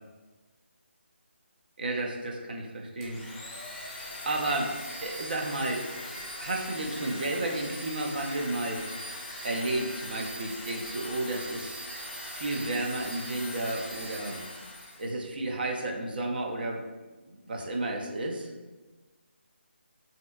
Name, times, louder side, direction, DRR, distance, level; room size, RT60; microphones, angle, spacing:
voice 1, 1.8-3.2 4.2-4.7 5.0-8.8 9.4-11.8 12.3-14.4 15.0-16.8 17.3-18.5, right 2 dB, 50° right, 1 dB, 0.4 m, -32 dB
Domestic sounds home sounds, 3.0-15.1, left 1 dB, 20° left, 0.6 m, -40 dB
3.1 x 2.7 x 2.2 m, 1.2 s
figure-of-eight pair, 170°, 6 cm